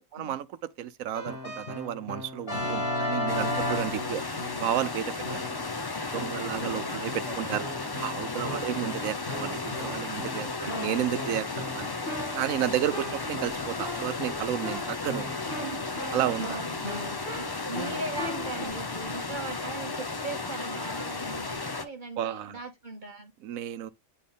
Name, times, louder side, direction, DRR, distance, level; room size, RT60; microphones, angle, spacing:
voice 1, 0.0-5.5 6.1-7.6 8.0-11.9 12.3-15.3 16.1-16.7 22.2-22.6 23.4-23.9, right 11 dB, 80° right, 1.1 m, -32 dB
Keyboard (musical), 1.1-4.8 5.2-5.7 6.1-18.7, left 1 dB, 40° left, 2.7 m, -36 dB
sound 1, 3.3-21.9, left 3 dB, 25° left, 0.6 m, -34 dB
voice 2, 6.5-7.5 8.7-8.8 10.6-11.0 12.8-13.3 15.6-15.8 16.8-17.1 17.3-23.3, right 3 dB, 35° right, 1.7 m, -39 dB
9.2 x 4.3 x 3.5 m
omnidirectional pair, 1.4 m